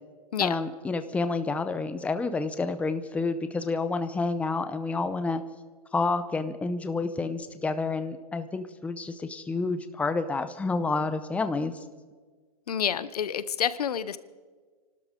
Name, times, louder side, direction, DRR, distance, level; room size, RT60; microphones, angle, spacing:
voice 1, 0.4-5.4 5.9-11.7, left 3 dB, 5° left, 10 dB, 0.7 m, -29 dB
voice 2, 12.7-14.2, left 8 dB, 90° left, 16 dB, 0.8 m, -28 dB
29.5 x 12.5 x 3.7 m, 1.5 s
hypercardioid pair, 140°, 19 cm